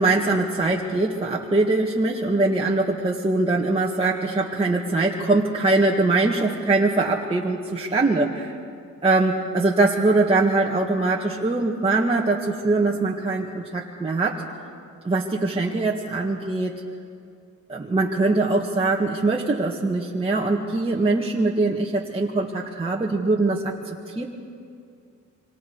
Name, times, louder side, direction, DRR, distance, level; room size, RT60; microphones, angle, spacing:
voice 1, 0.0-8.6 9.0-14.4 15.0-16.8 17.7-24.2, right 2 dB, 20° right, -3 dB, 1.9 m, -22 dB
26.0 x 25.5 x 4.8 m, 2.3 s
cardioid pair, 90°, 30 cm